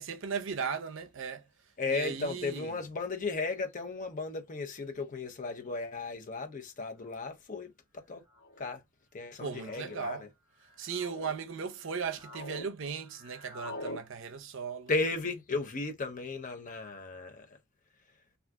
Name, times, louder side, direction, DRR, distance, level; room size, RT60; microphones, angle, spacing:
voice 1, 0.0-1.5 1.9-2.8 9.4-10.2 10.8-14.9, right 6 dB, 60° right, 0.5 m, -37 dB
voice 2, 1.8-8.2 8.6-8.8 9.1-10.3 14.9-17.5, left 3 dB, 35° left, 0.6 m, -35 dB
sound 1, 7.1-7.3 8.3-8.7 9.5-10.0 10.6-11.3 11.8-12.7 12.9-14.0, left 1 dB, 75° left, 1.1 m, -45 dB
2.4 x 2.3 x 3.4 m
head